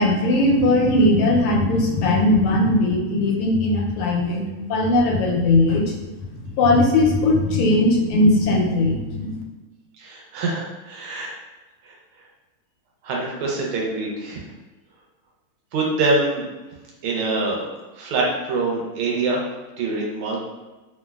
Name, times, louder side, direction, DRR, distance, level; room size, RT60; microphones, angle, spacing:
voice 1, 0.0-4.4 4.7-5.9 6.4-9.4, left 2 dB, 85° left, 0 dB, 1.4 m, -19 dB
voice 2, 10.0-11.3 11.8-12.0 13.0-14.4 15.7-16.5 17.0-17.7 17.9-19.4 19.8-20.4, right 3 dB, 80° right, -2 dB, 1.5 m, -24 dB
3.6 x 2.1 x 2.3 m, 1.1 s
omnidirectional pair, 2.4 m